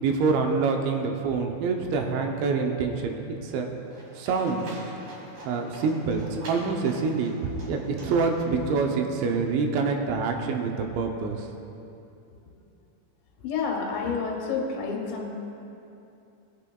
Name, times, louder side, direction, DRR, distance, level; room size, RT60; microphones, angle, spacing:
voice 1, 0.0-3.7 4.2-4.8 5.5-11.5, right 4 dB, 80° right, 3 dB, 3.0 m, -26 dB
Livestock farm animals working animals, 3.9-8.9, right 1 dB, 50° right, 3.4 m, -45 dB
voice 2, 13.4-15.3, left 5 dB, 75° left, -1 dB, 3.4 m, -29 dB
18.0 x 9.5 x 2.3 m, 2.7 s
omnidirectional pair, 5.3 m